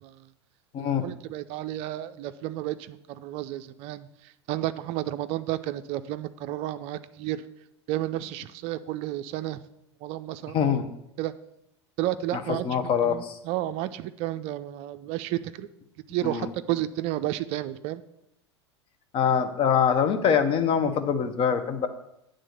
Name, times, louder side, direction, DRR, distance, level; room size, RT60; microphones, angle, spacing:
voice 1, 0.8-7.4 7.9-9.6 10.0-10.7 11.2-11.3 12.0-15.7 16.1-18.0, right 14 dB, 45° right, 12 dB, 0.4 m, -32 dB
voice 2, 10.5-10.9 12.3-13.4 16.2-16.5 19.1-21.9, left 7 dB, 40° left, 9 dB, 0.9 m, -24 dB
9.0 x 3.8 x 6.6 m, 0.82 s
figure-of-eight pair, 85°, 15 cm